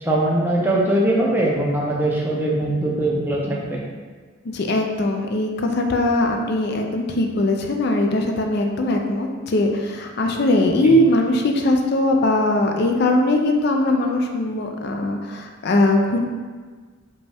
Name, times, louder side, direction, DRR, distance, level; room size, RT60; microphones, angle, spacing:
voice 1, 0.0-3.8 10.8-10.9, right 1 dB, 10° right, -4 dB, 0.6 m, -21 dB
voice 2, 4.4-16.2, left 1 dB, 50° left, 3 dB, 0.4 m, -20 dB
5.1 x 2.3 x 3.4 m, 1.5 s
head